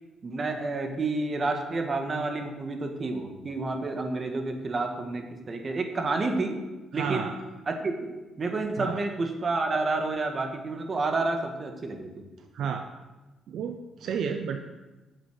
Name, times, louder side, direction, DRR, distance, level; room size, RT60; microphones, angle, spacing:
voice 1, 0.2-6.6 6.9-7.3 7.7-12.1, right 3 dB, 35° right, 4 dB, 1.7 m, -30 dB
voice 2, 6.9-7.4 8.8-9.0 12.5-12.9 13.5-14.6, right 7 dB, 70° right, 6 dB, 0.7 m, -31 dB
9.2 x 7.7 x 6.3 m, 1.1 s
cardioid pair, 90°, 0 cm